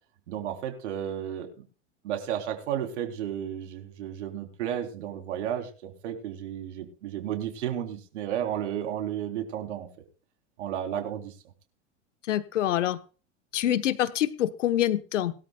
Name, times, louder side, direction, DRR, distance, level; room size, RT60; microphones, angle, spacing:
voice 1, 0.3-1.5 2.0-9.9 10.6-11.3, right 10 dB, 70° right, 5 dB, 3.6 m, -33 dB
voice 2, 12.3-13.0 13.5-15.3, left 12 dB, 75° left, 12 dB, 1.2 m, -26 dB
21.5 x 13.0 x 2.3 m, 0.36 s
hypercardioid pair, 105°, 37 cm